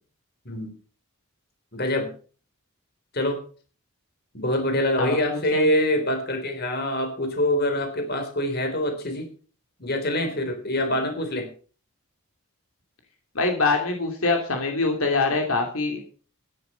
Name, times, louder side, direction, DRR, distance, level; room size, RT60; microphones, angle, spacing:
voice 1, 1.7-2.1 3.1-3.4 4.3-9.3 9.8-11.5, left 1 dB, 45° left, 6 dB, 3.7 m, -25 dB
voice 2, 5.0-5.7 13.3-16.0, left 3 dB, 70° left, 3 dB, 2.8 m, -24 dB
12.5 x 10.5 x 5.8 m, 0.40 s
head